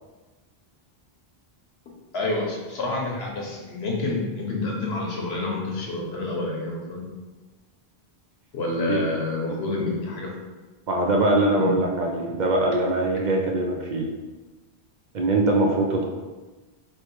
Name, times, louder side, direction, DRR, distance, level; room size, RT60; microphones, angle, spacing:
voice 1, 2.1-7.0 8.5-10.3 11.6-11.7, left 2 dB, 80° left, -1 dB, 1.2 m, -28 dB
voice 2, 10.9-14.1 15.1-16.0, right 2 dB, 55° right, 1 dB, 0.6 m, -22 dB
3.3 x 3.0 x 4.5 m, 1.2 s
omnidirectional pair, 1.0 m